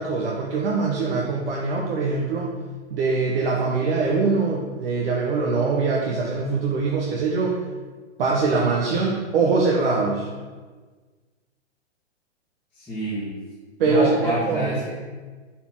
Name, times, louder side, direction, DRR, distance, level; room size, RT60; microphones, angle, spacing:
voice 1, 0.0-2.5 2.9-7.6 8.2-10.3 13.8-14.8, right 4 dB, 55° right, -2 dB, 1.1 m, -23 dB
voice 2, 12.8-13.3 13.9-14.9, equal, 5° left, -13 dB, 1.7 m, -27 dB
5.5 x 4.4 x 6.0 m, 1.4 s
hypercardioid pair, 135°, 35 cm